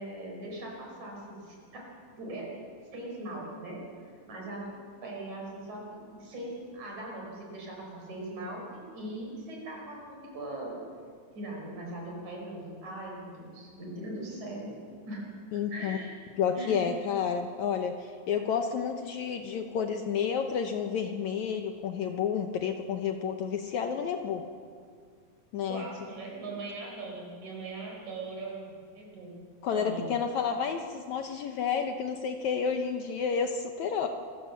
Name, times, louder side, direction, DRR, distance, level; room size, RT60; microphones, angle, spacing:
voice 1, 0.0-1.9 2.2-2.5 2.9-3.8 4.3-4.7 5.0-5.8 6.2-10.8 11.3-14.7 15.1-15.3 15.5-16.1 16.6-16.8 25.7-29.3 29.7-30.0, right 2 dB, 55° right, -1 dB, 6.5 m, -40 dB
voice 2, 15.5-16.0 16.4-24.4 25.5-25.8 29.6-34.1, left 7 dB, 70° left, 5 dB, 2.0 m, -30 dB
26.0 x 15.0 x 7.3 m, 2.1 s
omnidirectional pair, 4.0 m